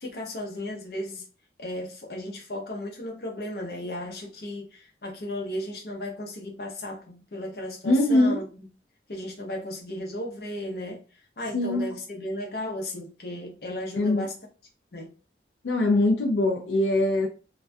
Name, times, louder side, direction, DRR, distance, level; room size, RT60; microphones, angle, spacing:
voice 1, 0.0-1.2 1.6-8.7 9.1-11.0 11.4-14.3 14.9-15.1, left 1 dB, 55° left, 0.7 m, -35 dB
voice 2, 7.8-8.4 11.5-11.9 13.9-14.3 15.6-17.3, left 1 dB, 90° left, 0.4 m, -22 dB
2.2 x 2.2 x 2.5 m
head